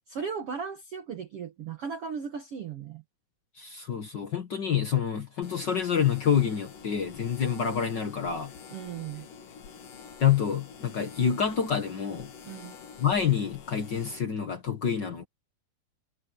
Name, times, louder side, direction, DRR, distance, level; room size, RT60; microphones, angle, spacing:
voice 1, 0.1-3.0 8.7-9.3 12.4-12.7, right 6 dB, 75° right, 1.3 m, -36 dB
voice 2, 3.6-8.5 10.2-12.3 13.0-15.3, left 8 dB, 85° left, 0.9 m, -27 dB
sound 1, 5.4-14.2, left 6 dB, 60° left, 3.9 m, -47 dB
omnidirectional pair, 4.6 m